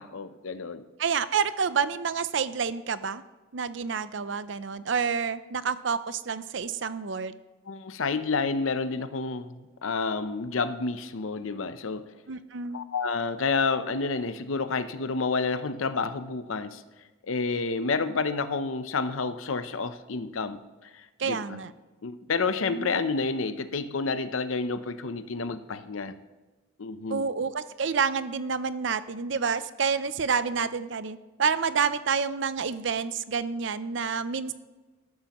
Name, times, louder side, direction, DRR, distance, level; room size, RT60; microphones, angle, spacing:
voice 1, 0.0-0.8 7.7-12.0 12.7-16.8 17.2-21.6 22.0-26.1 26.8-27.2, left 4 dB, 80° left, 11 dB, 0.7 m, -29 dB
voice 2, 1.0-3.2 3.5-7.3 12.3-12.8 21.2-21.7 22.7-23.1 27.1-34.5, right 6 dB, 65° right, 14 dB, 0.5 m, -28 dB
13.0 x 11.5 x 3.0 m, 1.2 s
head